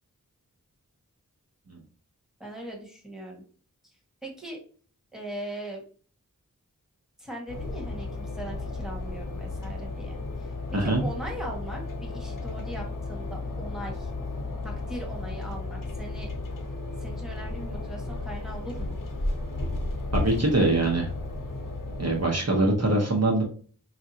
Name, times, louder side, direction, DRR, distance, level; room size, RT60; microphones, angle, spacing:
voice 1, 2.4-3.4 4.2-4.6 5.1-5.8 7.2-10.5 10.8-14.1 14.6-16.3 16.9-19.0, right 1 dB, ahead, -1 dB, 1.7 m, -40 dB
sound 1, 7.5-22.3, left 2 dB, 75° left, 1.0 m, -34 dB
voice 2, 10.7-11.1 20.1-21.1 22.0-23.4, right 2 dB, 50° right, 0 dB, 1.0 m, -23 dB
5.6 x 2.5 x 2.8 m, 0.41 s
wide cardioid pair, 45°, 33 cm